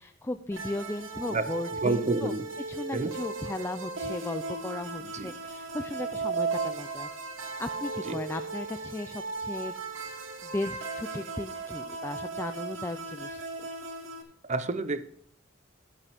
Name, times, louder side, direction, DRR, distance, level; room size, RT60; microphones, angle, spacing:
voice 1, 0.0-2.3 2.7-7.1 7.6-9.7 10.4-13.4 13.8-13.9, left 1 dB, 15° left, 8 dB, 0.4 m, -36 dB
sound 1, 0.5-14.2, right 3 dB, 85° right, 1.5 m, -36 dB
voice 2, 1.8-2.4 2.9-3.1 5.0-5.3 8.0-8.2 14.4-15.0, right 3 dB, 35° right, 12 dB, 0.7 m, -29 dB
11.0 x 10.5 x 3.5 m, 0.62 s
head